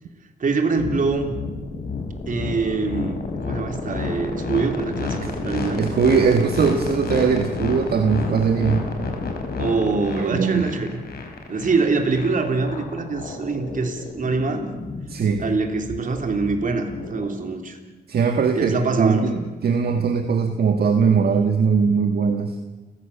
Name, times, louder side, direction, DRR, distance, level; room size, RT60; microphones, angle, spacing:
voice 1, 0.4-1.3 2.3-5.8 9.6-11.0 11.5-14.7 15.4-17.8 18.5-19.3, right 4 dB, 50° right, 5 dB, 3.3 m, -24 dB
sound 1, 0.8-17.3, left 4 dB, 65° left, 4.7 m, -30 dB
voice 2, 5.8-8.8 10.2-10.7 15.1-15.4 18.1-22.5, right 6 dB, 65° right, 6 dB, 1.6 m, -20 dB
29.5 x 15.5 x 7.1 m, 1.2 s
cardioid pair, 100°, 17 cm